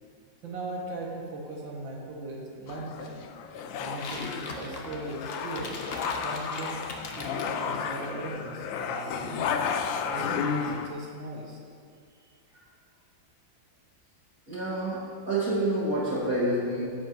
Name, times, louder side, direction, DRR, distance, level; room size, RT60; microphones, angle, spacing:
voice 1, 0.4-3.2 3.8-5.8 6.2-6.8 7.2-9.6 10.1-11.6 12.3-12.4, right 2 dB, 75° right, -2 dB, 2.4 m, -38 dB
sound 1, 2.7-10.9, left 6 dB, 85° left, 1.4 m, -33 dB
sound 2, 3.8-7.5, left 3 dB, 45° left, 0.9 m, -40 dB
voice 2, 14.5-17.0, right 1 dB, 45° right, -10 dB, 2.5 m, -28 dB
14.5 x 5.2 x 5.3 m, 2.2 s
omnidirectional pair, 2.1 m